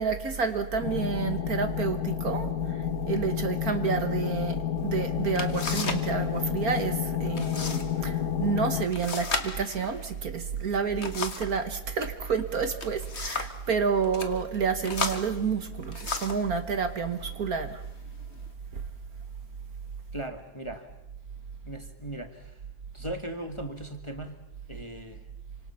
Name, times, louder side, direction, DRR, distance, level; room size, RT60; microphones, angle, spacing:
voice 1, 0.0-2.5 3.1-17.8, right 6 dB, 55° right, 8 dB, 1.7 m, -29 dB
sound 1, 0.8-8.9, left 10 dB, 65° left, 1.7 m, -30 dB
sound 2, 4.9-5.0 5.4-6.1 6.4-6.9 7.4-7.9 8.2-8.3 8.9-11.6 12.6-13.6 14.0-14.3 14.8-16.5 17.3-17.4 18.0-18.5, left 4 dB, 35° left, 1.9 m, -34 dB
voice 2, 20.1-20.9 21.7-22.6 22.9-24.4 24.7-25.2, right 1 dB, 15° left, 5 dB, 1.5 m, -38 dB
28.0 x 25.5 x 5.7 m, 0.92 s
omnidirectional pair, 2.0 m